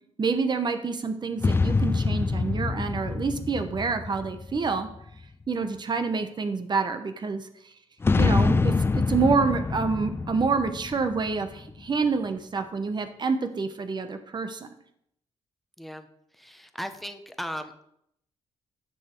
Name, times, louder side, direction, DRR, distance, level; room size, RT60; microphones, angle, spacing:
voice 1, 0.2-4.9 5.5-7.5 8.2-14.7, right 4 dB, 40° right, 8 dB, 0.9 m, -27 dB
sound 1, 1.4-5.1 8.0-11.8, left 4 dB, 20° left, 0.3 m, -26 dB
voice 2, 16.4-17.8, equal, ahead, 8 dB, 0.9 m, -37 dB
9.8 x 6.1 x 4.4 m, 0.74 s
cardioid pair, 95°, 12 cm